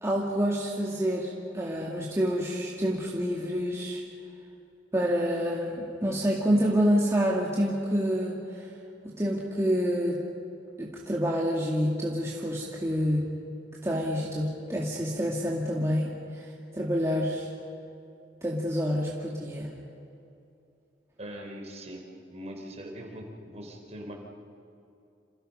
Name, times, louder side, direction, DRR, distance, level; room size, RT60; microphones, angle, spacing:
voice 1, 0.0-4.0 4.9-8.7 9.0-10.2 10.8-13.3 13.8-17.5 18.4-19.7, equal, 15° right, -4 dB, 2.3 m, -28 dB
voice 2, 21.2-22.0 22.3-24.1, equal, 40° right, 1 dB, 4.3 m, -41 dB
29.0 x 28.0 x 5.6 m, 2.7 s
head